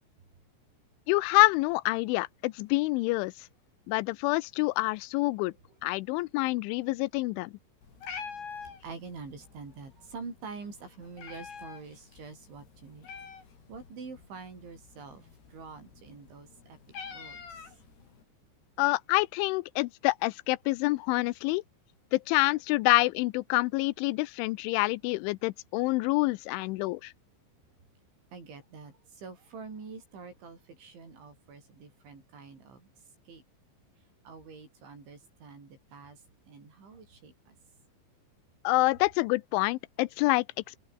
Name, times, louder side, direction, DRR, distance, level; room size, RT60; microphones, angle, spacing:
voice 1, 1.1-3.3 3.9-5.5 5.8-7.5 18.8-21.6 22.1-27.1 38.6-40.8, left 22 dB, 85° left, 3.1 m, -27 dB
Meow, 7.8-18.2, left 6 dB, 60° left, 7.2 m, -47 dB
voice 2, 8.8-13.1 13.7-16.8 17.1-17.8 28.3-32.9 33.3-33.4 34.2-37.6, right 4 dB, 75° right, 10.5 m, -46 dB
open air
omnidirectional pair, 5.4 m